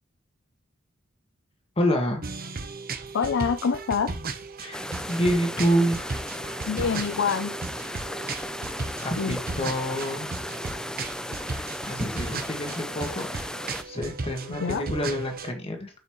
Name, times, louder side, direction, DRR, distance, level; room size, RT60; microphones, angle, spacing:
voice 1, 1.8-2.2 4.6-6.0 9.0-10.3 11.9-13.3 13.8-15.9, equal, 30° left, 1.7 m, -27 dB
sound 1, 2.2-15.5, right 3 dB, 45° right, 0.9 m, -36 dB
voice 2, 3.1-4.2 6.7-7.6 9.2-9.4 14.5-14.9, left 6 dB, 65° left, 0.5 m, -26 dB
sound 2, 4.7-13.8, left 1 dB, 5° left, 0.4 m, -35 dB
8.1 x 5.7 x 3.0 m
head